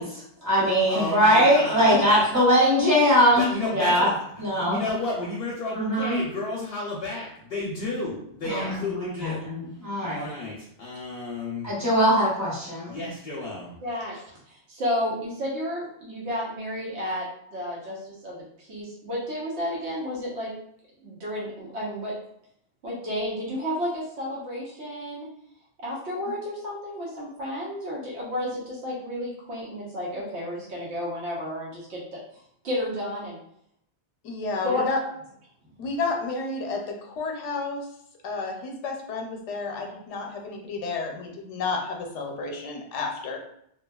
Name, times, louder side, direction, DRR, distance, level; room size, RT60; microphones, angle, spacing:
voice 1, 0.0-4.1 4.4-4.8 5.7-6.2 8.4-10.3 11.6-13.0, equal, 15° right, -8 dB, 1.1 m, -21 dB
voice 2, 0.9-2.3 3.4-9.5 10.0-11.7 12.9-13.7, left 2 dB, 65° left, -4 dB, 0.7 m, -32 dB
voice 3, 13.8-20.5 21.0-22.1 22.8-25.3 25.8-32.2 32.6-33.4 34.6-34.9, left 1 dB, 75° right, -5 dB, 1.1 m, -32 dB
voice 4, 34.2-35.0 35.8-37.8 38.2-43.4, left 3 dB, 90° left, 2 dB, 0.9 m, -31 dB
2.8 x 2.3 x 2.2 m, 0.71 s
omnidirectional pair, 1.2 m